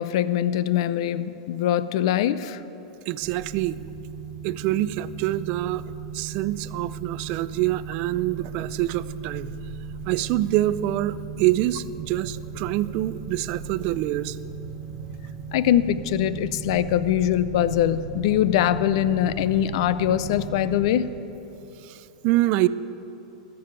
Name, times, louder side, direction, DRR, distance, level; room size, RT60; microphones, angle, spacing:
voice 1, 0.0-2.6 15.5-21.1, left 11 dB, 55° left, 15 dB, 0.5 m, -22 dB
voice 2, 3.1-3.8 4.4-5.8 6.1-9.5 10.1-14.4 21.8-22.7, right 15 dB, 35° right, 16 dB, 0.3 m, -25 dB
sound 1, 3.2-20.9, right 5 dB, 10° right, 1.4 m, -37 dB
14.0 x 6.9 x 8.9 m, 3.0 s
supercardioid pair, 160°, 3 cm